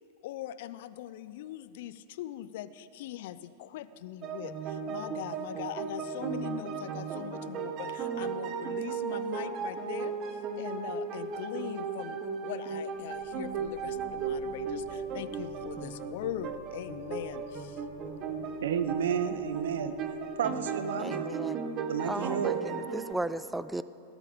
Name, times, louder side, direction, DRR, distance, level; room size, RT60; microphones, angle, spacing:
voice 1, 0.2-12.2 12.4-17.8, left 12 dB, 60° left, 15 dB, 0.5 m, -41 dB
sound 1, 4.2-23.1, right 5 dB, 40° right, 1.1 m, -36 dB
sound 2, 12.9-20.7, equal, 90° right, 2.7 m, -55 dB
voice 2, 18.3-19.9 20.4-21.3 21.9-22.6, right 8 dB, 70° right, 12 dB, 0.8 m, -31 dB
voice 3, 21.0-21.6 22.0-23.8, right 2 dB, 5° right, 15 dB, 0.3 m, -36 dB
18.5 x 8.3 x 5.3 m, 2.8 s
hypercardioid pair, 95°, 0 cm